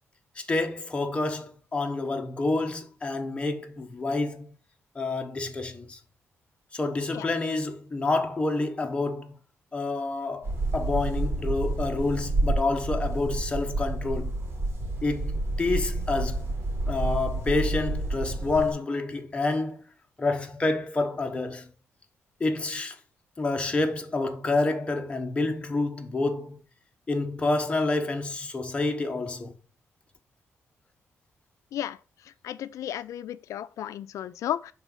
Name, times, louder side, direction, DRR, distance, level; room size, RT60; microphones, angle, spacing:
voice 1, 0.4-4.5 4.9-6.0 6.7-9.3 9.7-14.3 15.0-16.5 16.9-19.8 20.2-21.7 22.4-23.0 23.4-26.6 27.1-29.5, left 3 dB, 20° left, 1.1 m, -28 dB
sound 1, 10.4-18.7, right 2 dB, 45° right, 2.9 m, -29 dB
voice 2, 32.4-34.7, left 11 dB, 85° left, 0.5 m, -33 dB
5.5 x 4.0 x 6.0 m
cardioid pair, 125°, 5 cm